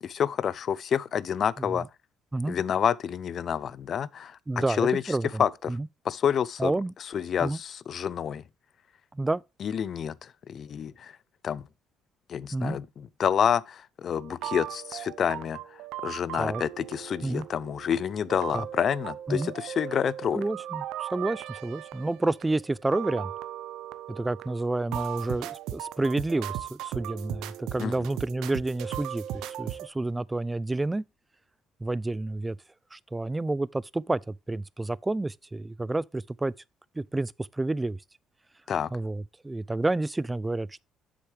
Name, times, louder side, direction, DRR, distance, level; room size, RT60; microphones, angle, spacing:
voice 1, 0.0-1.9 2.5-5.8 6.0-6.7 7.1-8.4 9.6-11.2 11.4-11.7 12.3-20.4 27.8-27.9 38.7-38.9, left 8 dB, 50° left, 0.5 m, -28 dB
voice 2, 4.5-5.4 5.7-5.9 6.6-6.9 7.4-7.6 9.1-9.4 12.5-12.8 16.4-16.6 17.2-17.4 18.5-18.6 19.3-19.5 20.3-23.3 24.1-31.0 31.8-32.6 32.9-36.5 37.0-38.0 38.9-40.8, right 2 dB, 15° right, 0.3 m, -29 dB
sound 1, 14.1-29.9, right 12 dB, 85° right, 0.6 m, -38 dB
7.8 x 6.5 x 3.3 m
cardioid pair, 110°, 0 cm